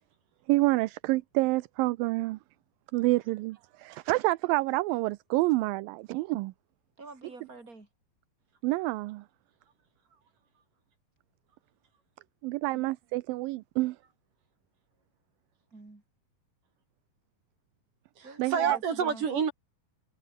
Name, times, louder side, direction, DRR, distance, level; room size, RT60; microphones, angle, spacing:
voice 1, 0.5-2.4 2.9-6.5 8.6-9.2 12.4-14.0 18.4-18.8, right 20 dB, 80° right, 2.3 m, -28 dB
voice 2, 7.0-7.9 15.7-16.0 18.2-19.2, right 3 dB, 20° right, 5.6 m, -47 dB
voice 3, 18.2-19.5, right 6 dB, 60° right, 4.6 m, -29 dB
omnidirectional pair, 4.3 m